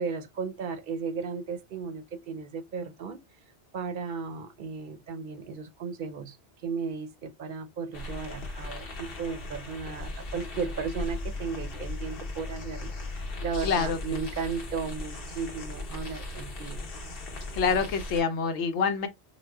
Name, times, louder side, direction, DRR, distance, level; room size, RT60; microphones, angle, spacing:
voice 1, 0.0-3.2 3.7-16.8, right 5 dB, 55° right, 0.7 m, -35 dB
sound 1, 7.9-18.2, left 2 dB, 60° left, 1.1 m, -37 dB
voice 2, 13.6-14.0 17.5-19.1, left 5 dB, 80° left, 0.9 m, -26 dB
4.9 x 2.1 x 2.2 m
omnidirectional pair, 1.1 m